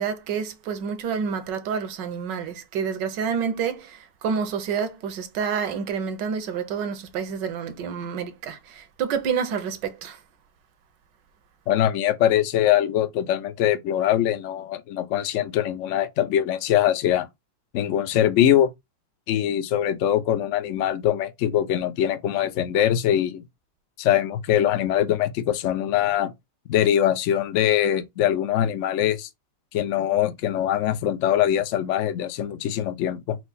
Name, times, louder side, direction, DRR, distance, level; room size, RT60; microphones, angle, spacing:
voice 1, 0.0-3.8 4.2-8.6 9.0-10.2, right 6 dB, 75° right, 1.4 m, -28 dB
voice 2, 11.7-17.3 17.7-18.7 19.3-23.4 24.0-26.3 26.7-29.3 29.7-33.4, left 11 dB, 85° left, 0.6 m, -22 dB
4.6 x 2.1 x 4.0 m
omnidirectional pair, 2.0 m